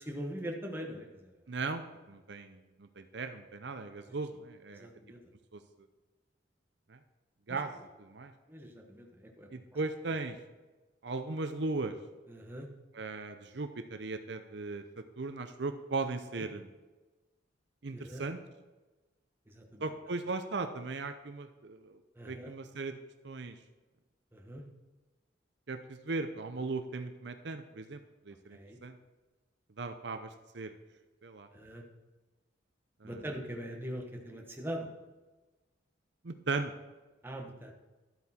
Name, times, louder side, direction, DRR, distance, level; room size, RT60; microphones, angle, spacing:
voice 1, 0.0-1.3 4.1-4.2 4.7-5.2 7.5-7.6 8.5-9.5 12.3-12.7 16.4-16.5 17.9-18.3 19.5-19.9 22.2-22.5 24.3-24.6 28.5-28.8 31.5-31.8 33.0-34.9 37.2-37.7, equal, 10° right, 1 dB, 1.3 m, -42 dB
voice 2, 1.5-4.9 5.5-5.6 6.9-7.0 7.5-7.7 8.0-8.3 9.5-10.4 11.0-11.9 12.9-14.8 15.2-16.7 17.8-18.4 19.8-22.0 22.3-23.0 23.2-23.6 25.7-28.0 28.3-28.9 29.8-30.7 31.2-31.5 33.0-33.2 36.2-36.7, right 3 dB, 65° right, 8 dB, 0.7 m, -37 dB
12.5 x 8.3 x 4.3 m, 1.2 s
head